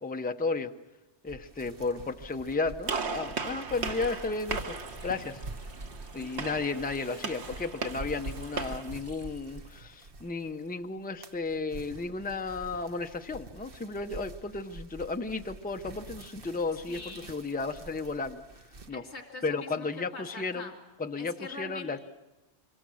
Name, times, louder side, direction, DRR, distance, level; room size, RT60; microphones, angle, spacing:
voice 1, 0.0-0.7 1.2-4.8 5.0-5.4 6.1-17.0 17.3-18.4 18.9-19.0 19.4-20.7 21.0-22.0, left 3 dB, 10° left, 7 dB, 0.6 m, -33 dB
sound 1, 1.3-10.6 11.0-18.9, right 2 dB, 55° right, 1.3 m, -46 dB
Gunshot gunfire, 2.9-8.9, right 4 dB, 70° right, 1.5 m, -37 dB
Water tap faucet, 3.4-11.1 11.4-11.5 12.3-13.9, right 2 dB, 90° right, 2.8 m, -58 dB
voice 2, 6.2-6.6 16.9-17.3 18.9-19.9 20.1-20.7 21.2-22.0, left 4 dB, 90° left, 2 dB, 2.4 m, -43 dB
25.5 x 23.5 x 6.3 m, 1.1 s
omnidirectional pair, 1.2 m